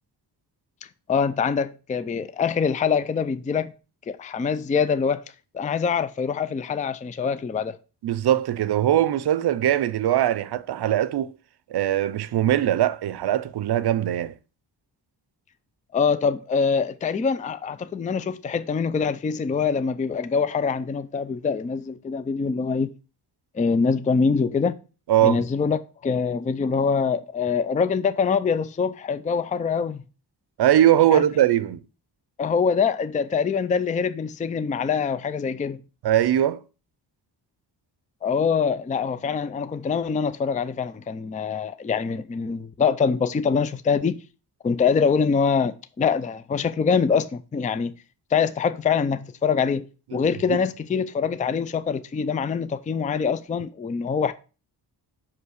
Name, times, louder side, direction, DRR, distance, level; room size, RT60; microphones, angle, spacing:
voice 1, 1.1-3.7 4.1-5.2 5.5-7.8 15.9-22.9 23.5-24.8 25.2-30.0 31.1-31.2 32.4-35.8 38.2-44.2 44.6-47.9 48.3-54.3, left 5 dB, 20° left, 0.4 m, -24 dB
voice 2, 8.0-11.3 11.7-14.3 25.1-25.4 30.6-31.8 36.0-36.6 50.5-50.6, right 11 dB, 65° right, 0.6 m, -21 dB
5.7 x 5.6 x 6.3 m
wide cardioid pair, 140°, 41 cm